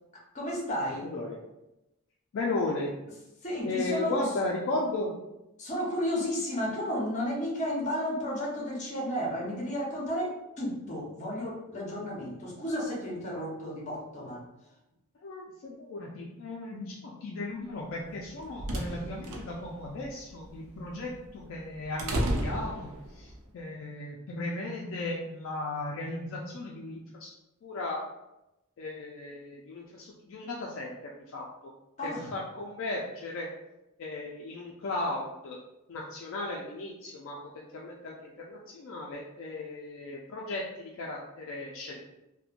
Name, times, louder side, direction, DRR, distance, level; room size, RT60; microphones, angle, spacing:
voice 1, 0.1-1.1 3.4-4.3 5.6-14.5 32.0-32.3, equal, 30° left, -3 dB, 0.7 m, -33 dB
voice 2, 2.3-2.9 3.6-5.1 15.2-27.3 27.6-28.0 28.8-31.0 31.3-31.4 32.0-33.5 34.0-35.6 35.9-42.1, left 2 dB, 60° left, -3 dB, 0.3 m, -36 dB
sound 1, 18.1-23.4, right 1 dB, 80° right, 0.5 m, -34 dB
2.8 x 2.1 x 2.4 m, 0.92 s
head